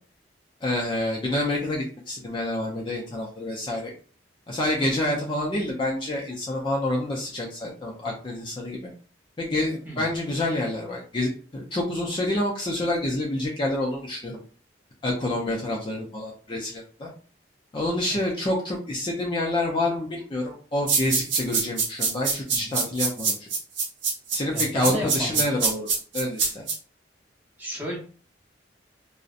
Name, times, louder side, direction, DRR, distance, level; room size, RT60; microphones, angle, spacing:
voice 1, 0.6-3.9 4.5-8.9 9.4-14.4 15.0-17.1 17.7-23.5 24.3-26.6, left 1 dB, 25° left, -2 dB, 0.4 m, -28 dB
sound 1, 20.9-26.7, right 5 dB, 80° right, 0.8 m, -24 dB
voice 2, 24.5-25.5 27.6-28.0, left 1 dB, 10° right, -4 dB, 0.8 m, -33 dB
2.6 x 2.0 x 2.4 m, 0.41 s
head